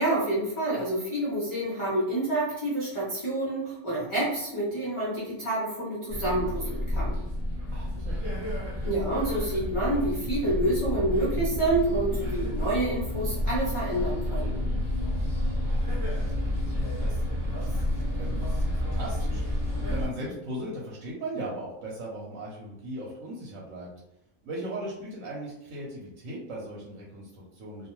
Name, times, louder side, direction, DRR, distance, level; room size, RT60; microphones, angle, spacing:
voice 1, 0.0-7.2 8.9-14.6, right 1 dB, 40° left, -6 dB, 0.4 m, -28 dB
sound 1, 6.1-20.1, left 1 dB, 45° right, 0.4 m, -30 dB
voice 2, 7.7-8.5 15.6-16.4 17.0-17.2 17.6-23.9 24.4-27.9, right 1 dB, 75° right, -4 dB, 1.0 m, -38 dB
2.4 x 2.3 x 2.9 m, 0.85 s
omnidirectional pair, 1.4 m